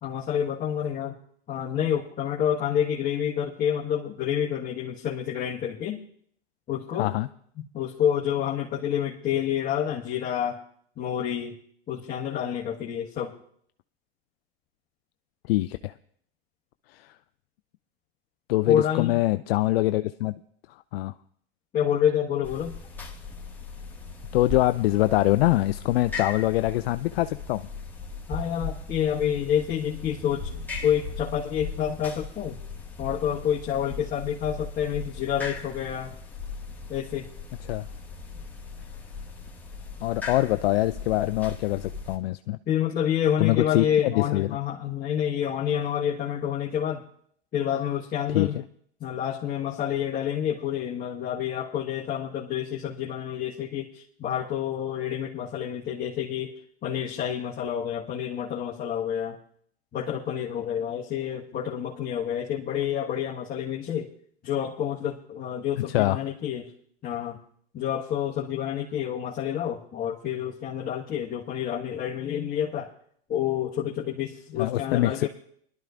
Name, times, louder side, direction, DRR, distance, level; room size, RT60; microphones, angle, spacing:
voice 1, 0.0-1.1 1.5-6.0 6.7-7.1 7.6-10.6 11.0-11.6 11.9-13.3 18.7-19.2 21.7-22.7 28.3-32.6 33.0-36.1 36.9-37.3 42.7-47.0 47.5-48.5 49.0-56.5 56.8-59.4 59.9-64.1 64.4-66.7 67.0-67.4 67.7-72.9 73.3-75.3, left 9 dB, 30° left, -5 dB, 1.5 m, -28 dB
voice 2, 15.5-15.9 16.9-17.1 18.5-20.3 20.9-21.1 24.3-27.7 37.7-37.9 40.0-42.6 43.4-44.5 48.3-48.6 65.9-66.2 74.6-75.3, left 17 dB, 70° left, 11 dB, 0.5 m, -24 dB
sound 1, 22.4-42.2, left 4 dB, 5° left, 1.8 m, -38 dB
22.5 x 12.0 x 2.5 m, 0.64 s
hypercardioid pair, 105°, 31 cm